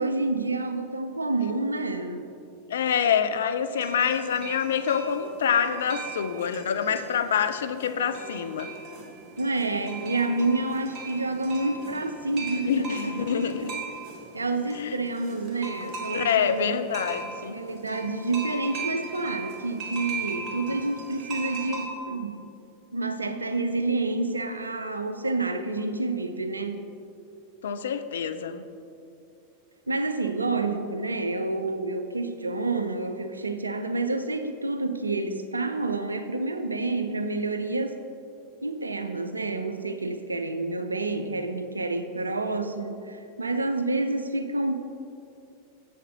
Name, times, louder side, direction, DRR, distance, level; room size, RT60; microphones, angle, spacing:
voice 1, 0.0-2.3 9.4-13.8 14.3-16.7 17.5-22.4 22.9-26.9 29.9-38.0 38.6-44.8, right 2 dB, 80° right, 9 dB, 0.5 m, -29 dB
voice 2, 2.7-8.7 12.7-13.8 14.7-15.0 16.1-17.6 27.6-28.7, left 7 dB, 65° left, 10 dB, 0.4 m, -26 dB
sound 1, 3.7-21.9, right 4 dB, 35° right, 1.5 m, -39 dB
7.3 x 6.7 x 3.9 m, 2.6 s
figure-of-eight pair, 90°, 0 cm